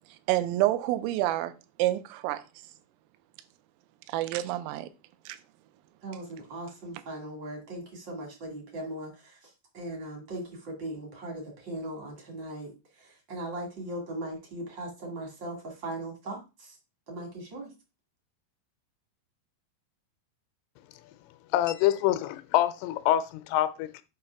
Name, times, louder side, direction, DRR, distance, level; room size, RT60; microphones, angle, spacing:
voice 1, 0.3-1.5 1.8-2.4 4.1-4.9 5.3-5.4, right 15 dB, 85° right, 3.3 m, -27 dB
voice 2, 6.0-12.7 13.0-16.8 17.1-17.7, right 1 dB, 55° right, 1.2 m, -39 dB
voice 3, 21.5-24.0, left 13 dB, 85° left, 3.0 m, -26 dB
8.0 x 2.9 x 5.7 m
omnidirectional pair, 5.9 m